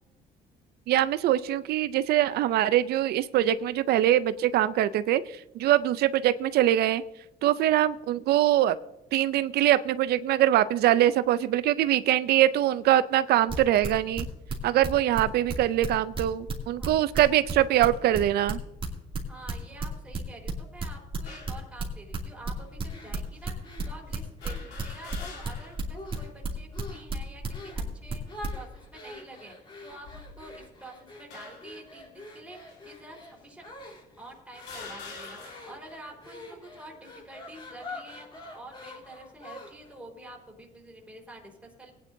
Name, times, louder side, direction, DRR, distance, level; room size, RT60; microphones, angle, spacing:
voice 1, 0.9-5.2 5.6-7.0 7.4-8.8 9.1-14.3 14.6-18.6, right 13 dB, 70° right, 14 dB, 0.5 m, -23 dB
sound 1, 13.5-15.2 15.5-19.5 19.8-23.5 23.8-28.5, right 4 dB, 30° right, 2.5 m, -31 dB
voice 2, 19.3-41.9, right 1 dB, 5° right, -1 dB, 4.0 m, -48 dB
sound 2, 21.3-21.6 22.5-22.6 24.4-25.9 26.3-26.4 27.5-28.0 28.7-28.9 29.9-30.7 31.3-31.8 32.7-32.8 33.7-33.8 34.5-35.9, left 4 dB, 80° left, 3.2 m, -45 dB
sound 3, 22.9-25.5 25.9-26.4 26.7-27.1 27.5-27.9 28.3-40.0, left 2 dB, 30° left, 3.4 m, -46 dB
18.5 x 10.0 x 2.7 m, 0.90 s
cardioid pair, 110°, 17 cm